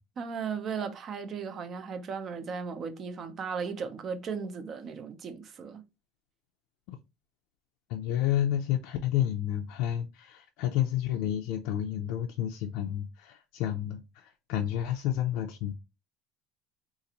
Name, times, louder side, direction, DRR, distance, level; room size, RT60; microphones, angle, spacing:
voice 1, 0.2-5.8, right 6 dB, 35° right, 0.6 m, -36 dB
voice 2, 7.9-15.7, left 11 dB, 70° left, 0.4 m, -30 dB
3.9 x 2.5 x 2.8 m
cardioid pair, 145°, 0 cm